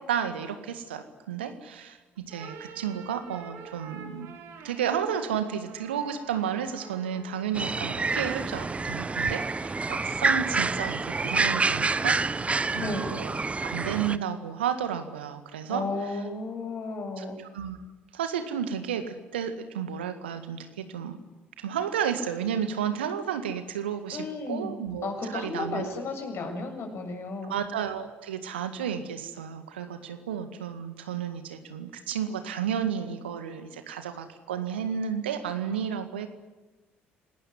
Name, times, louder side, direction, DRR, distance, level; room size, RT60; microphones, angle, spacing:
voice 1, 0.0-2.0 2.3-4.3 4.6-12.5 12.7-13.3 13.6-15.8 17.2-17.8 18.1-21.2 21.6-25.8 27.5-36.3, right 8 dB, 75° right, 9 dB, 1.9 m, -32 dB
sound 1, 2.2-8.2, right 5 dB, 55° right, 4.2 m, -47 dB
sound 2, 7.5-14.2, right 3 dB, 20° right, 0.9 m, -28 dB
voice 2, 12.8-13.2 15.7-17.4 24.1-24.8 25.0-27.6, left 3 dB, 45° left, 4 dB, 7.3 m, -33 dB
28.5 x 19.5 x 9.6 m, 1.2 s
figure-of-eight pair, 50°, 6 cm